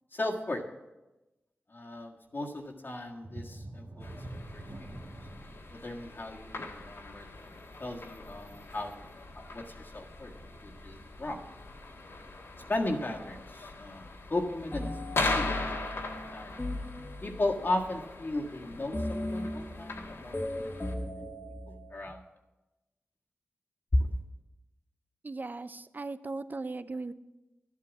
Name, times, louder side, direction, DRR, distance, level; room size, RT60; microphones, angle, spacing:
voice 1, 0.1-0.7 1.7-5.2 5.7-7.3 7.8-9.0 9.5-10.3 10.6-11.4 12.7-16.0 16.3-16.5 17.2-21.1 21.9-22.2 23.9-24.1, left 1 dB, 50° left, 1 dB, 1.8 m, -35 dB
sound 1, 3.2-8.6 9.1-9.2 9.7-9.8, right 1 dB, 65° right, 1.7 m, -46 dB
sound 2, 4.0-20.9, left 2 dB, 70° left, 1.7 m, -40 dB
sound 3, 14.7-17.7 18.9-22.2, left 1 dB, 30° left, 1.5 m, -37 dB
voice 2, 25.2-27.1, right 3 dB, 45° right, 13 dB, 0.7 m, -38 dB
12.0 x 8.5 x 7.3 m, 1.1 s
cardioid pair, 45°, 4 cm